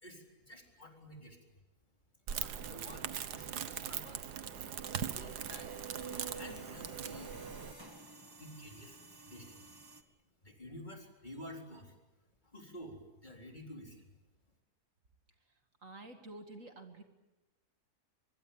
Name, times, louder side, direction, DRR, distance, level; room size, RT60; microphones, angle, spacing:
voice 1, 0.0-1.5 2.3-4.3 4.9-5.7 6.3-7.4 8.4-9.6 10.4-12.0 12.4-14.0, equal, 30° left, 1 dB, 4.1 m, -51 dB
sound 1, 2.3-10.0, right 3 dB, 15° right, 1.7 m, -53 dB
Crackle, 2.3-7.7, right 9 dB, 90° right, 1.6 m, -40 dB
voice 2, 15.4-17.0, right 2 dB, 55° right, 5 dB, 2.4 m, -50 dB
24.0 x 23.5 x 8.8 m, 1.1 s
omnidirectional pair, 1.7 m